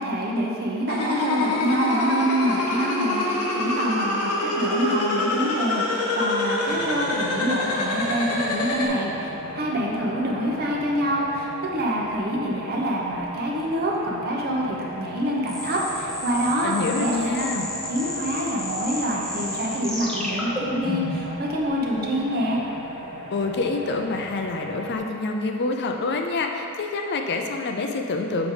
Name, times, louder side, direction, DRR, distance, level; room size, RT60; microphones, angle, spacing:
voice 1, 0.0-9.3 9.5-17.4 17.9-22.6, equal, 45° right, -2 dB, 0.8 m, -26 dB
sound 1, 0.9-8.9, left 2 dB, 85° left, 0.9 m, -26 dB
sound 2, 6.6-25.0, equal, 80° right, 1.4 m, -37 dB
sound 3, 15.5-21.3, left 1 dB, 5° left, 1.1 m, -31 dB
voice 2, 16.6-17.7 23.3-28.5, left 3 dB, 50° left, 3 dB, 0.5 m, -27 dB
6.9 x 4.7 x 3.8 m, 2.6 s
head